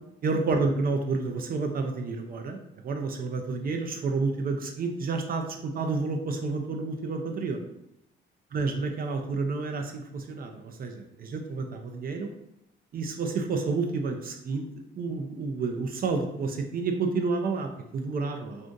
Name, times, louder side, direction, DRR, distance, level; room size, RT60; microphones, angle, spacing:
voice 1, 0.2-2.6 2.8-7.6 8.5-12.3 12.9-14.6 15.0-18.7, right 4 dB, 50° right, 4 dB, 0.4 m, -30 dB
2.5 x 2.5 x 3.7 m, 0.81 s
cardioid pair, 90°, 20 cm